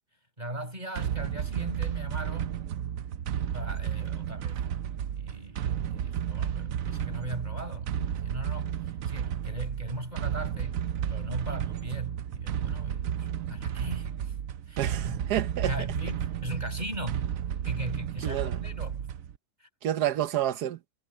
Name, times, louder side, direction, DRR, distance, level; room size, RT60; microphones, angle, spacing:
voice 1, 0.4-2.6 3.5-4.6 5.1-10.8 11.1-14.3 14.7-15.2 15.6-17.3 17.6-19.1 19.6-19.7, right 1 dB, 25° right, 7.2 m, -39 dB
sound 1, 1.0-19.4, right 9 dB, 65° right, 1.0 m, -32 dB
voice 2, 14.8-15.7 18.2-18.6 19.8-20.8, right 12 dB, 80° right, 1.4 m, -29 dB
omnidirectional pair, 1.7 m